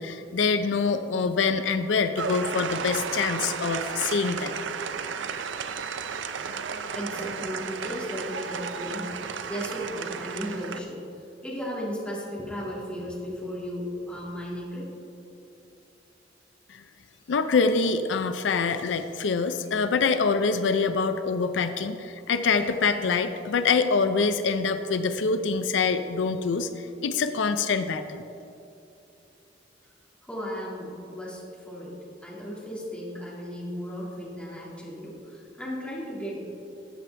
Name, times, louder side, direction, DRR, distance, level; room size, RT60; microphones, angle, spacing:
voice 1, 0.0-4.5 16.7-16.8 17.3-28.2, left 4 dB, 85° left, 9 dB, 0.5 m, -25 dB
sound 1, 2.2-10.8, right 6 dB, 85° right, 0.5 m, -33 dB
voice 2, 6.7-11.0 11.4-14.9 30.2-31.9 32.2-36.4, equal, 5° left, -5 dB, 2.1 m, -35 dB
13.5 x 7.6 x 3.3 m, 2.7 s
head